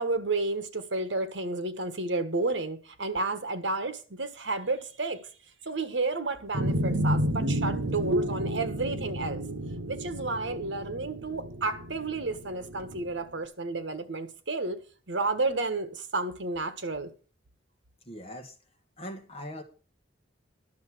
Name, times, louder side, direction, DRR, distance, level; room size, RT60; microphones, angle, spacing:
voice 1, 0.0-5.3 5.6-9.4 9.8-14.8 15.1-17.1, right 3 dB, 70° right, 1.4 m, -31 dB
sound 1, 6.5-13.1, equal, 90° right, 0.9 m, -31 dB
voice 2, 18.0-18.5 19.0-19.6, equal, 30° left, 1.6 m, -40 dB
11.5 x 6.8 x 6.1 m
head